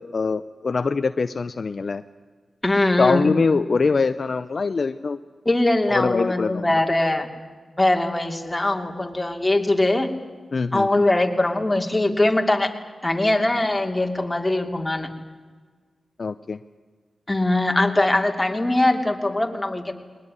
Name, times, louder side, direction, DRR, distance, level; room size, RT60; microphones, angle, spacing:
voice 1, 0.0-2.0 3.0-5.2 5.9-6.8 10.5-11.1 16.2-16.6, left 4 dB, 55° left, 11 dB, 0.7 m, -23 dB
voice 2, 2.6-3.3 5.4-7.3 7.8-10.2 10.7-12.7 13.0-15.1 17.3-19.9, left 2 dB, 15° left, 4 dB, 2.9 m, -21 dB
21.0 x 20.0 x 9.9 m, 1.5 s
cardioid pair, 60°, 0 cm